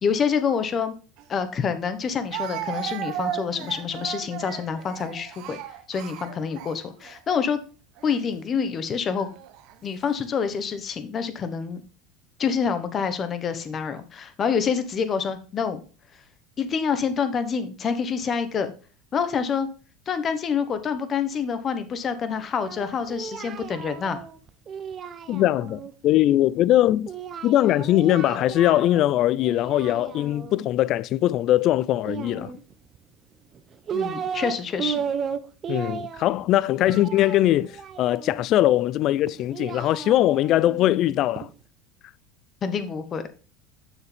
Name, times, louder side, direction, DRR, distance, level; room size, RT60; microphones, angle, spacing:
voice 1, 0.0-0.9 1.3-5.6 5.9-7.6 8.0-9.3 9.8-11.8 12.4-15.8 16.6-18.7 19.1-19.7 20.1-24.2 33.9-35.0 42.6-43.3, left 6 dB, 30° left, 1.2 m, -27 dB
Speech, 1.2-1.3 2.3-7.2 8.0-8.2 9.2-9.8, right 11 dB, 60° right, 0.8 m, -35 dB
Singing, 22.7-25.9 27.1-29.1 29.4-30.6 32.0-33.0 33.5-34.5 34.8-38.5 39.2-41.5, right 7 dB, 30° right, 0.9 m, -34 dB
voice 2, 25.3-27.1 27.4-32.5 35.7-41.5, left 13 dB, 50° left, 0.3 m, -21 dB
7.2 x 6.7 x 3.4 m
supercardioid pair, 130°, 0 cm